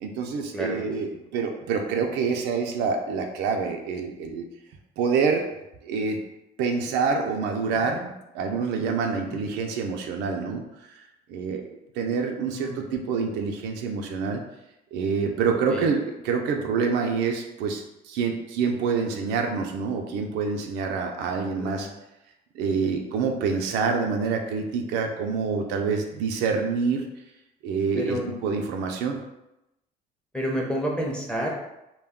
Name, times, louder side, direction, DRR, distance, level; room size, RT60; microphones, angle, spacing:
voice 1, 0.0-4.4 5.0-5.4 5.8-6.2 6.6-10.6 10.9-11.0 11.3-11.6 12.0-14.4 14.9-21.9 22.5-27.1 27.6-29.2, right 5 dB, 90° right, 3 dB, 0.4 m, -26 dB
voice 2, 9.0-9.4 12.4-12.8 15.7-15.9 21.6-21.9 23.5-23.6 28.0-28.4 30.3-31.5, equal, 5° left, -2 dB, 0.6 m, -30 dB
2.2 x 2.2 x 3.5 m, 0.91 s
cardioid pair, 110°, 17 cm